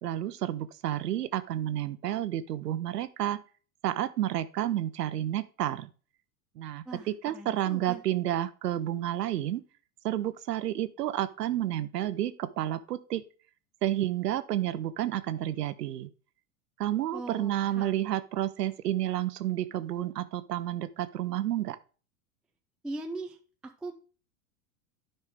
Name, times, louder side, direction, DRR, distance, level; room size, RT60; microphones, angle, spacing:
voice 1, 0.0-3.4 3.8-5.9 6.6-9.6 10.0-13.2 13.8-16.1 16.8-21.8, right 12 dB, 85° right, 14 dB, 0.7 m, -30 dB
voice 2, 6.9-8.0 17.1-17.9 22.8-23.4 23.6-24.0, right 2 dB, ahead, 5 dB, 0.4 m, -40 dB
9.7 x 5.6 x 3.5 m, 0.36 s
hypercardioid pair, 100°, 47 cm